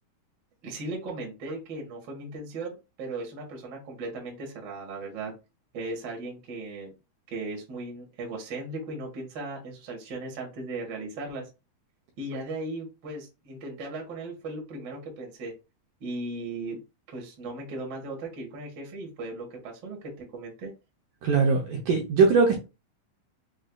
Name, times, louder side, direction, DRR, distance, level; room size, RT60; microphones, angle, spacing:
voice 1, 0.6-5.3 5.7-6.9 7.3-11.5 12.2-15.5 16.0-16.8 17.1-20.7, right 2 dB, 50° right, 1.4 m, -37 dB
voice 2, 21.2-22.6, right 4 dB, 75° right, 2.0 m, -21 dB
6.2 x 2.6 x 2.3 m
omnidirectional pair, 4.2 m